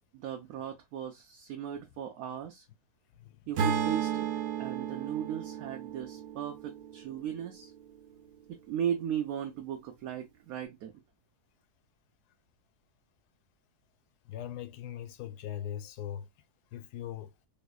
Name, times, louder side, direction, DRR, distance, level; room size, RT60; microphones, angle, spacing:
voice 1, 0.1-2.6 3.5-4.3 4.6-7.7 8.5-10.9, right 9 dB, 70° right, 1.0 m, -37 dB
Acoustic guitar / Strum, 3.6-7.8, right 7 dB, 90° right, 1.3 m, -34 dB
voice 2, 14.3-16.3 16.7-17.3, left 10 dB, 85° left, 1.2 m, -40 dB
3.5 x 3.1 x 2.3 m
omnidirectional pair, 1.6 m